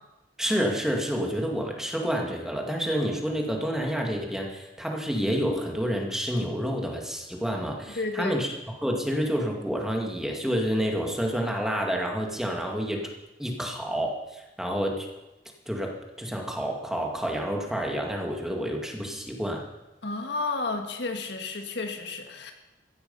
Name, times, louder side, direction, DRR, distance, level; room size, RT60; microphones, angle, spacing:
voice 1, 0.4-8.5 8.8-13.0 13.4-15.1 15.7-19.6, equal, 5° right, 0 dB, 2.2 m, -29 dB
voice 2, 7.9-8.4 20.0-22.5, left 3 dB, 70° left, 5 dB, 1.8 m, -31 dB
15.5 x 14.5 x 5.5 m, 1.0 s
head